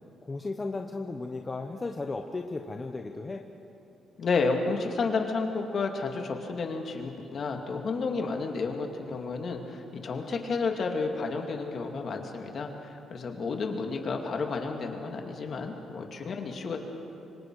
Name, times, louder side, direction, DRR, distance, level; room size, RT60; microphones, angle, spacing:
voice 1, 0.2-3.4, left 3 dB, 25° left, 3 dB, 1.1 m, -35 dB
voice 2, 4.2-16.8, left 4 dB, 50° left, 3 dB, 2.4 m, -31 dB
26.0 x 24.0 x 4.9 m, 2.9 s
cardioid pair, 105°, 0 cm